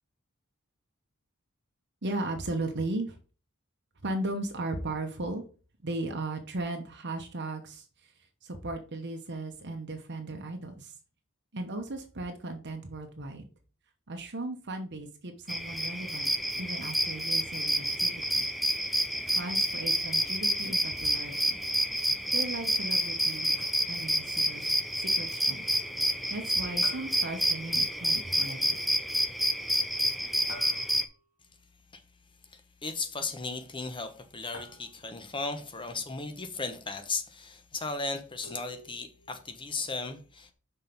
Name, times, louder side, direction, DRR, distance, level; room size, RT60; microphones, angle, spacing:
voice 1, 2.0-3.2 4.0-5.4 5.8-8.1 8.4-10.9 11.5-13.5 14.1-16.3 16.6-18.4 19.2-21.6 22.3-23.6 23.9-25.6 26.3-28.8, right 2 dB, 55° right, 1.0 m, -37 dB
sound 1, 15.5-31.0, equal, ahead, 0.5 m, -29 dB
sound 2, 23.6-24.2 26.8-28.1 30.5-31.4 34.5-35.4 38.4-39.4, left 2 dB, 65° left, 2.4 m, -49 dB
voice 2, 32.5-40.5, left 3 dB, 25° left, 1.0 m, -36 dB
6.0 x 4.5 x 5.3 m
head